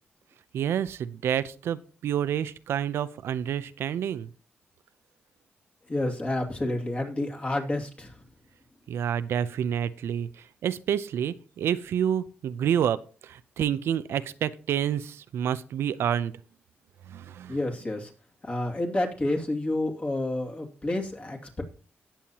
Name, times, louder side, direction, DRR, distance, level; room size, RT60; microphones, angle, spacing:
voice 1, 0.5-4.3 8.9-16.3 17.1-17.6, right 9 dB, 85° right, 14 dB, 0.6 m, -28 dB
voice 2, 5.9-8.1 17.5-18.1 18.4-21.4, left 1 dB, 30° left, 1 dB, 2.5 m, -29 dB
17.5 x 7.1 x 2.9 m, 0.38 s
cardioid pair, 90°, 4 cm